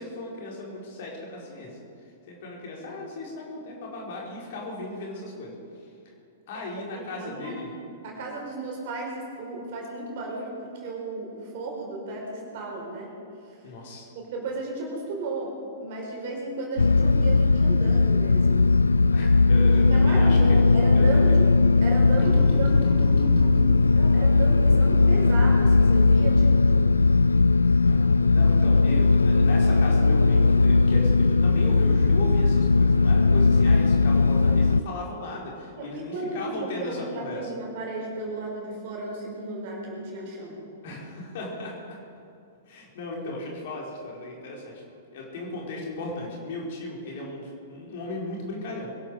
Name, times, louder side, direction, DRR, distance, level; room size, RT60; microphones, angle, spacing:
voice 1, 0.0-1.8 2.3-5.5 5.8-5.9 6.5-7.7 13.6-14.1 19.1-20.6 20.9-21.3 22.2-23.7 27.8-37.5 40.8-41.9 42.7-44.7 45.1-48.9, left 2 dB, 50° left, -2 dB, 4.5 m, -36 dB
voice 2, 6.5-7.6 8.0-13.1 13.4-13.6 14.1-18.7 19.6-21.5 21.8-22.7 23.9-26.9 35.8-40.6, right 2 dB, 45° right, -1 dB, 4.9 m, -34 dB
sound 1, 16.8-34.8, left 3 dB, 75° left, 0.4 m, -19 dB
23.0 x 12.0 x 5.0 m, 2.7 s
figure-of-eight pair, 105°, 0 cm